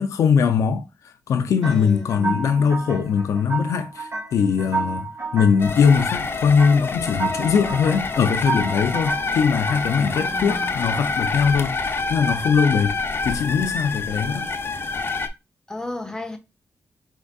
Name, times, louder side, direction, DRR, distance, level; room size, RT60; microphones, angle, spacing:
voice 1, 0.0-13.0 13.2-14.5, left 6 dB, 85° left, 0.5 m, -21 dB
voice 2, 1.6-2.4 10.0-10.7 15.7-16.4, left 1 dB, 10° left, 1.2 m, -33 dB
sound 1, 1.6-11.5, right 4 dB, 50° right, 2.0 m, -32 dB
sound 2, 5.6-15.3, left 4 dB, 45° left, 0.7 m, -27 dB
5.1 x 3.8 x 2.3 m
cardioid pair, 65°, 5 cm